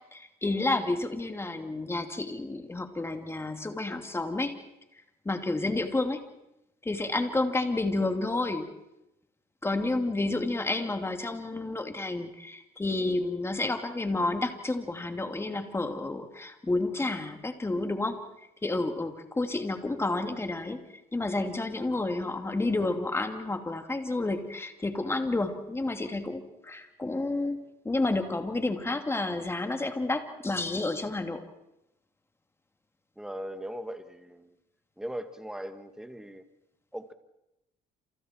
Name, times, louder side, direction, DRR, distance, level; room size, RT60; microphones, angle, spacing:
voice 1, 0.1-4.5 5.2-6.2 6.8-8.7 9.6-18.2 18.6-20.8 21.1-27.6 27.8-31.4, left 2 dB, 15° left, 6 dB, 2.7 m, -30 dB
voice 2, 33.2-34.6 35.0-36.4 36.9-37.1, equal, 5° right, 8 dB, 1.9 m, -39 dB
28.5 x 28.0 x 4.6 m, 0.89 s
cardioid pair, 110°, 17 cm